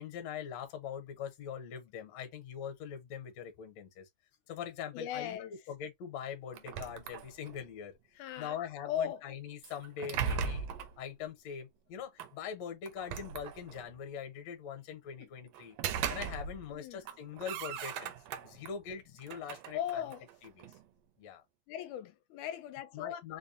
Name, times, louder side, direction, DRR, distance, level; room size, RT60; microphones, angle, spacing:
voice 1, 0.0-4.1 4.5-5.4 5.7-10.7 11.0-15.8 16.1-18.1 18.4-20.1 20.4-20.7 21.2-21.4 22.9-23.4, left 8 dB, 70° left, 1.9 m, -42 dB
voice 2, 4.9-5.5 8.2-8.6 8.9-9.2 15.2-15.3 16.7-17.0 18.5-18.6 19.7-20.3 21.7-23.2, left 10 dB, 85° left, 2.0 m, -38 dB
sound 1, 6.5-7.7 9.6-11.0 12.2-12.3 12.9-13.9 15.5-16.8 17.0-18.7 19.2-20.8, right 7 dB, 80° right, 1.4 m, -38 dB
5.3 x 2.2 x 2.6 m
omnidirectional pair, 3.5 m